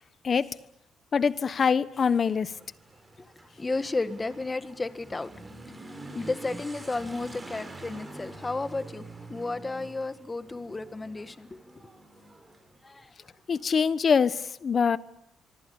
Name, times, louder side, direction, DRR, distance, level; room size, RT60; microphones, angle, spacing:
voice 1, 0.2-0.6 1.1-2.5 13.5-15.0, left 6 dB, 40° left, 1.1 m, -24 dB
Motorcycle / Accelerating revving vroom, 1.3-13.7, right 2 dB, 20° right, 5.7 m, -46 dB
voice 2, 3.6-5.3 6.1-11.6 12.8-13.1, left 3 dB, 20° left, 1.7 m, -33 dB
25.5 x 24.0 x 8.6 m
cardioid pair, 110°, 0 cm